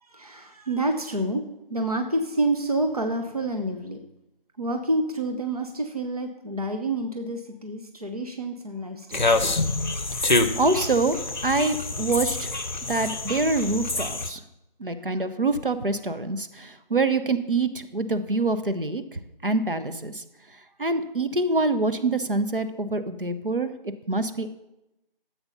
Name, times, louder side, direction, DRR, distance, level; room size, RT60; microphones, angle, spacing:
voice 1, 0.0-1.4 1.7-4.0 4.6-9.3, right 1 dB, 40° right, 4 dB, 0.9 m, -28 dB
sound 1, 9.1-14.3, left 2 dB, 50° left, 0.9 m, -26 dB
voice 2, 10.1-12.5 12.9-14.4 14.8-20.2 20.8-23.7 24.1-24.5, right 3 dB, 65° right, 10 dB, 1.1 m, -25 dB
13.0 x 7.9 x 5.5 m, 0.91 s
figure-of-eight pair, 180°, 29 cm